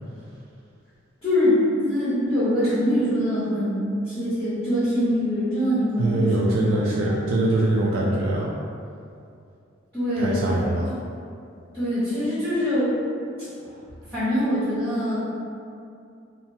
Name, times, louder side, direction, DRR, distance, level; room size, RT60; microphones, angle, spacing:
voice 1, 1.2-7.2 9.9-10.5 11.7-12.9 13.6-13.8 14.1-15.2, equal, 10° left, -15 dB, 0.9 m, -24 dB
voice 2, 6.0-8.5 10.2-10.9, right 1 dB, 85° right, -4 dB, 0.3 m, -23 dB
2.9 x 2.0 x 2.6 m, 2.5 s
head